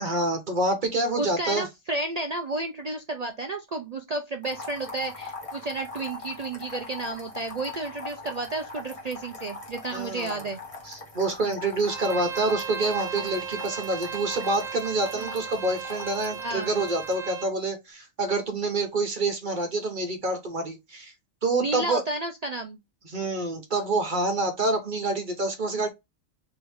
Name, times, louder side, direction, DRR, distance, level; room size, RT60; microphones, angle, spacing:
voice 1, 0.0-1.7 9.9-10.5 10.8-21.1 21.4-22.0 23.0-25.9, right 2 dB, 40° right, 1.0 m, -27 dB
voice 2, 1.2-10.6 15.1-15.4 16.4-16.7 21.6-22.8, right 2 dB, 65° right, 0.4 m, -32 dB
sound 1, 4.4-17.2, left 3 dB, 25° left, 1.3 m, -42 dB
Bowed string instrument, 11.9-17.5, right 7 dB, 85° right, 1.3 m, -36 dB
3.6 x 3.0 x 3.5 m
omnidirectional pair, 1.4 m